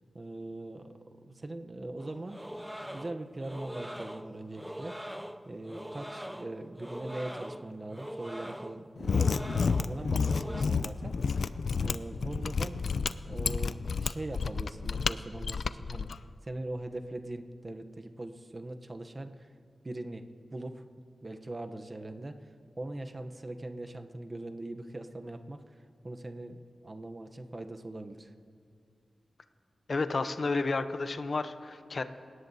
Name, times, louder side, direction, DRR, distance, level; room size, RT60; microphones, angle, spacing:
voice 1, 0.1-0.9 1.2-2.4 2.8-5.1 5.5-11.4 11.8-12.8 13.2-16.1 16.4-19.5 19.8-20.3 20.5-20.9 21.2-28.3, right 2 dB, 30° right, 7 dB, 0.8 m, -41 dB
sound 1, 2.0-10.6, equal, 5° right, 0.4 m, -43 dB
Mechanisms, 9.0-16.1, left 5 dB, 70° left, 0.4 m, -30 dB
voice 2, 29.9-32.0, left 3 dB, 50° left, 9 dB, 0.7 m, -31 dB
28.0 x 17.5 x 2.7 m, 2.3 s
wide cardioid pair, 135°, 0 cm